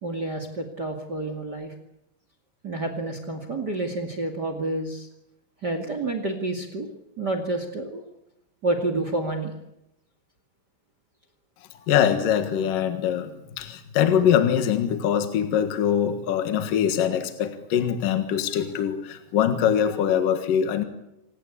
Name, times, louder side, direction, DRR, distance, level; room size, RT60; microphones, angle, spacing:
voice 1, 0.0-1.7 2.6-5.1 5.6-6.9 7.2-8.1 8.6-9.5, right 2 dB, 45° right, 7 dB, 1.3 m, -29 dB
voice 2, 11.9-20.8, left 9 dB, 60° left, 7 dB, 2.4 m, -23 dB
27.5 x 18.5 x 8.5 m, 0.87 s
omnidirectional pair, 5.8 m